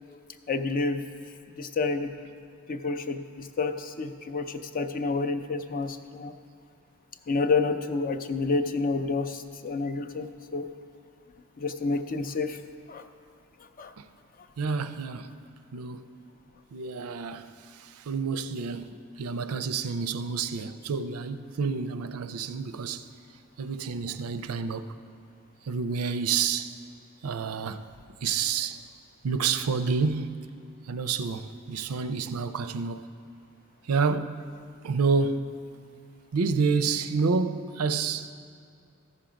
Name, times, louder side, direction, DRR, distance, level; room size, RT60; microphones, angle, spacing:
voice 1, 0.5-1.0 1.6-2.1 2.7-6.3 7.3-10.6 11.6-12.6 12.9-13.0 13.8-13.9, left 4 dB, 40° left, 0.5 m, -29 dB
voice 2, 14.6-15.3 15.7-16.1 16.7-17.5 17.8-18.9 19.2-23.0 23.6-24.9 25.7-26.7 27.2-27.8 28.2-28.8 29.2-30.4 30.9-33.0 33.9-34.4 34.8-35.4 36.3-38.3, right 5 dB, 85° right, 0.5 m, -29 dB
14.0 x 5.9 x 5.1 m
head